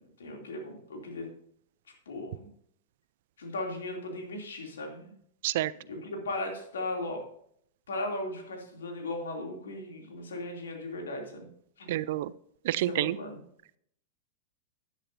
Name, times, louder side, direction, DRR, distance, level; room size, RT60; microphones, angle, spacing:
voice 1, 0.2-1.3 2.1-2.5 3.4-5.1 5.9-7.2 7.9-11.5 11.8-11.9 12.8-13.4, left 2 dB, 80° left, 1 dB, 2.8 m, -37 dB
voice 2, 11.9-12.3 12.6-13.2, right 14 dB, 60° right, 19 dB, 0.4 m, -28 dB
11.0 x 10.0 x 2.7 m, 0.68 s
hypercardioid pair, 105°, 0 cm